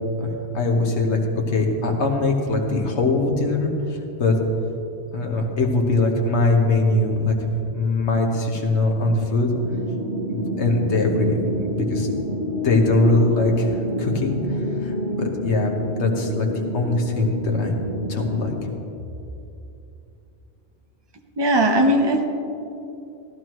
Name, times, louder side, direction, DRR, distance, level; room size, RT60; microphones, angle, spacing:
voice 1, 0.2-1.2 1.5-4.4 5.1-7.4 7.7-9.5 10.3-11.4 11.7-12.1 12.6-16.5 16.7-17.8 18.1-18.5, left 2 dB, 85° left, 2 dB, 1.5 m, -21 dB
sound 1, 9.5-18.7, equal, 75° right, 2.0 m, -28 dB
voice 2, 21.4-22.2, right 1 dB, 25° right, 4 dB, 0.8 m, -18 dB
14.5 x 12.5 x 3.1 m, 2.8 s
omnidirectional pair, 1.1 m